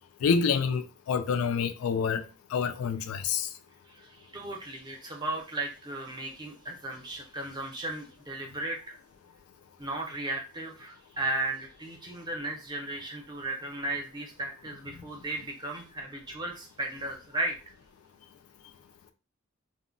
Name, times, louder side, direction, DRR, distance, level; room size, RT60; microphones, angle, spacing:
voice 1, 0.2-2.2 2.5-3.5, left 6 dB, 85° left, 0.3 m, -27 dB
voice 2, 3.9-9.0 9.8-17.5, right 2 dB, 20° right, 0.6 m, -35 dB
2.2 x 2.0 x 3.7 m
head